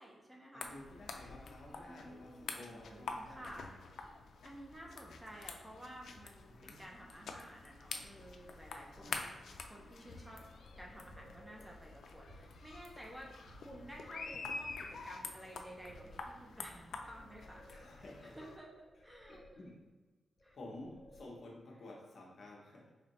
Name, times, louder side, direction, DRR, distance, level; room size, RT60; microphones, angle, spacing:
voice 1, 0.0-0.7 1.7-3.7 4.4-9.3 9.6-10.4 10.8-13.3 13.6-18.7 19.0-19.4 20.4-20.6, right 1 dB, 10° right, -2 dB, 0.5 m, -53 dB
voice 2, 0.5-3.7 6.4-6.8 8.9-9.3 17.7-18.5 19.3-19.8 20.5-22.9, left 1 dB, 55° left, -2 dB, 0.9 m, -52 dB
sound 1, 0.6-18.6, left 4 dB, 75° left, 0.3 m, -48 dB
sound 2, 10.1-12.1 13.5-14.9 15.2-16.6 16.9-18.3 18.7-20.0 20.4-21.7, equal, 5° left, 1.3 m, -61 dB
sound 3, 10.1-13.1 13.4-16.8, right 2 dB, 75° right, 0.6 m, -61 dB
4.1 x 2.6 x 3.0 m, 1.3 s
wide cardioid pair, 145°, 0 cm